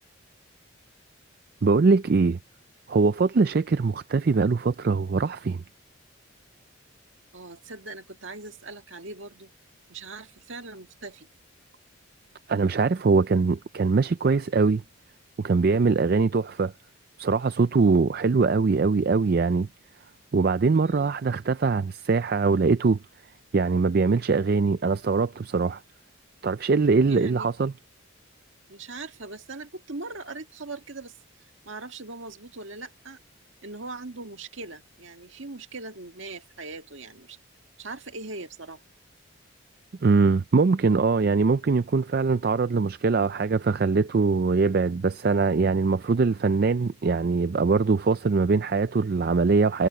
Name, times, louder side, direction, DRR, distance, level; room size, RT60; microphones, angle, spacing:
voice 1, 1.6-2.4 2.9-5.6 12.5-14.8 15.4-16.7 17.2-19.7 20.3-23.0 23.5-25.8 26.4-27.7 40.0-49.9, right 4 dB, 45° right, 0.4 m, -22 dB
voice 2, 7.3-9.5 9.9-11.3 20.8-21.2 27.0-27.5 28.7-31.1 31.7-33.2 33.6-37.4 37.8-38.8, right 3 dB, 65° right, 1.8 m, -40 dB
head